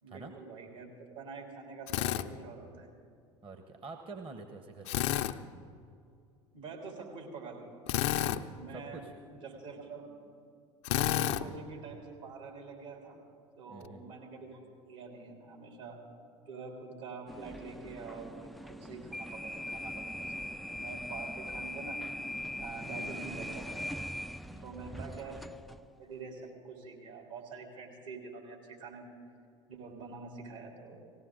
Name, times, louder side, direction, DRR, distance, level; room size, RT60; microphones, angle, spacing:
voice 1, 0.0-2.9 6.5-8.0 8.5-9.0 9.3-10.1 10.9-13.2 13.6-16.0 16.4-22.0 22.6-23.9 24.6-29.1 29.7-31.0, right 4 dB, 70° right, 0 dB, 3.4 m, -46 dB
Drill, 1.9-2.3 4.9-5.3 7.9-8.4 10.8-11.4, left 12 dB, 60° left, 0.5 m, -29 dB
voice 2, 3.4-5.1 8.7-9.1 13.7-14.1 23.2-23.8 24.4-25.1, right 3 dB, 35° right, 6 dB, 1.0 m, -48 dB
sound 1, 17.3-25.9, left 1 dB, ahead, 0.3 m, -41 dB
19.0 x 16.0 x 3.9 m, 2.4 s
hypercardioid pair, 70°, 16 cm